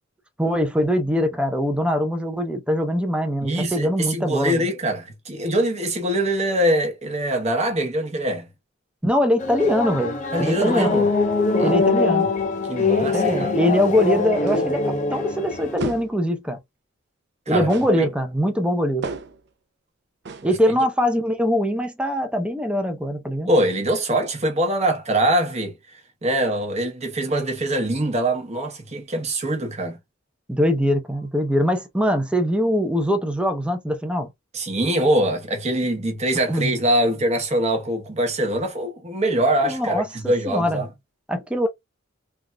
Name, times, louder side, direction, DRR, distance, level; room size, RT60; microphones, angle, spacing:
voice 1, 0.4-4.7 9.0-10.9 11.6-12.3 13.1-16.6 17.5-19.1 20.4-23.5 30.5-34.3 36.5-36.8 39.6-40.8 41.3-41.7, equal, 5° right, 0.6 m, -22 dB
voice 2, 3.4-8.5 10.3-11.1 11.6-11.7 12.7-13.5 17.5-18.1 20.4-20.5 23.5-25.7 26.2-30.0 34.5-40.9, right 1 dB, 35° right, 0.9 m, -23 dB
sound 1, 9.4-15.8, left 3 dB, 35° left, 0.5 m, -23 dB
sound 2, 14.5-14.9 15.8-16.3 17.7-18.1 19.0-19.5 20.3-20.6, right 3 dB, 55° right, 0.5 m, -33 dB
3.4 x 2.4 x 2.2 m
head